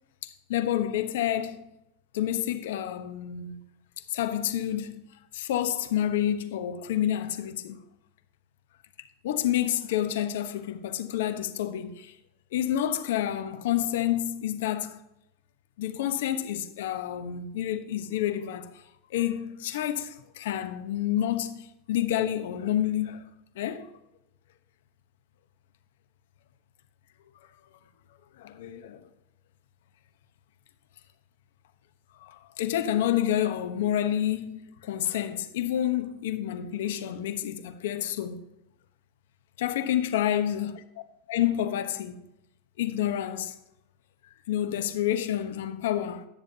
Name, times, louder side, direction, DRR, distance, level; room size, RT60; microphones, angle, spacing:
voice 1, 0.2-1.7 2.1-3.6 4.1-5.0 5.3-7.8 9.2-12.1 12.5-15.0 15.8-18.7 19.1-23.2 23.6-23.9 28.4-29.0 32.2-38.4 39.6-40.8 41.3-42.2 42.8-43.5 44.5-46.3, left 11 dB, 80° left, 1.1 m, -29 dB
18.0 x 7.2 x 2.9 m
supercardioid pair, 130°, 0 cm